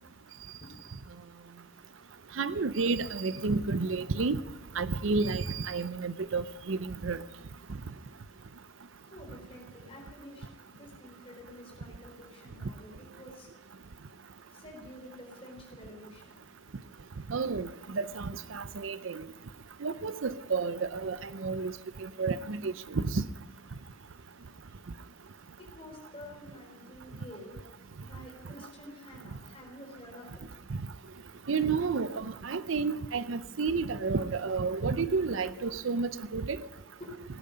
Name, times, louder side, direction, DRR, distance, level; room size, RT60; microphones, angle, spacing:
voice 1, 2.4-4.4 4.8-7.2 17.3-19.2 19.8-21.7 22.0-23.2 31.5-36.6, right 4 dB, 80° right, 14 dB, 0.6 m, -31 dB
voice 2, 9.1-10.5 10.7-13.5 14.5-16.4 23.7-23.8 25.7-27.6 28.0-30.3 37.0-37.1, left 1 dB, 30° left, 0 dB, 4.0 m, -49 dB
17.5 x 10.5 x 5.2 m, 0.98 s
head